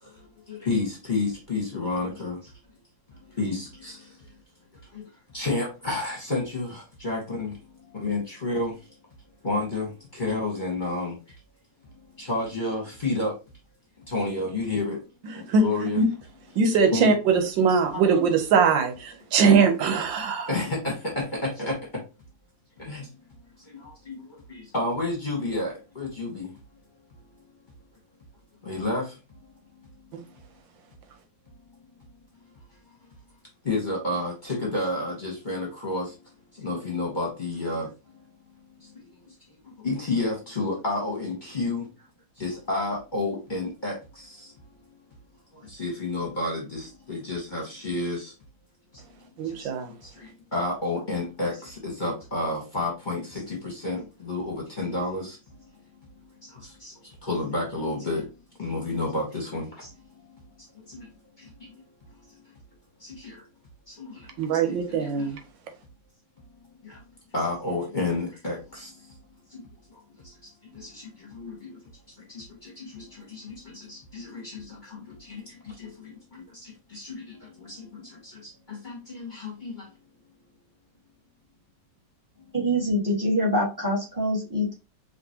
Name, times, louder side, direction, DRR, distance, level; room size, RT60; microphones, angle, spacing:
voice 1, 0.0-2.5 3.2-4.3 4.8-5.1 5.3-7.6 7.8-8.9 9.4-11.2 12.2-13.3 14.0-15.0 15.3-16.0 16.9-17.2 17.7-18.0 20.5-21.7 22.9-23.0 23.6-26.5 28.6-29.2 33.6-36.2 36.5-37.9 38.8-39.3 39.6-41.9 42.4-44.5 45.5-48.3 48.9-49.0 49.4-55.4 56.4-58.3 58.6-59.9 60.3-61.1 61.4-61.8 62.2-62.4 63.0-63.4 63.9-65.3 66.8-67.0 67.3-69.1 69.5-71.8 72.2-79.9, left 2 dB, 30° left, 1.3 m, -31 dB
voice 2, 16.6-20.5 49.4-49.9 64.4-65.4, right 5 dB, 85° right, 1.6 m, -21 dB
voice 3, 82.5-84.7, equal, 10° right, 1.5 m, -25 dB
5.1 x 2.9 x 2.9 m
omnidirectional pair, 2.0 m